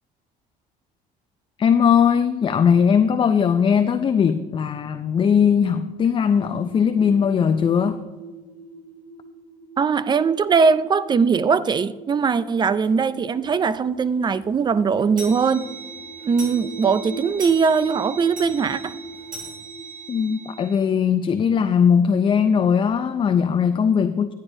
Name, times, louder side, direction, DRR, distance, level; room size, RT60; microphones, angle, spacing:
voice 1, 1.6-8.0 20.1-24.3, left 7 dB, 30° left, 0.4 m, -19 dB
sound 1, 6.1-22.4, right 2 dB, 10° right, 3.6 m, -42 dB
voice 2, 9.8-15.7 16.2-18.9, right 5 dB, 25° right, 0.4 m, -20 dB
sound 2, 12.8-13.0 13.5-13.6 13.9-14.0 14.3-20.8, right 4 dB, 60° right, 3.0 m, -39 dB
14.5 x 8.9 x 2.7 m
cardioid pair, 110°, 16 cm